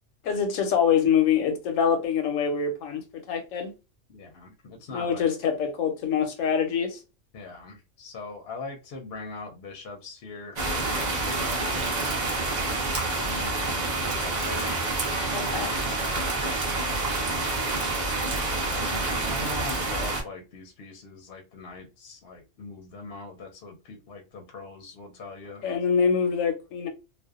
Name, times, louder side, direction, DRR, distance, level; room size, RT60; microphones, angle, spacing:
voice 1, 0.2-3.7 4.9-7.0 15.3-15.7 25.6-26.9, left 7 dB, 90° left, 1.0 m, -25 dB
voice 2, 4.1-5.3 7.3-12.2 13.0-14.8 15.3-17.1 18.6-25.7, left 3 dB, 60° left, 0.8 m, -42 dB
sound 1, 10.6-20.2, right 2 dB, 45° right, 0.7 m, -28 dB
2.5 x 2.1 x 2.3 m
omnidirectional pair, 1.3 m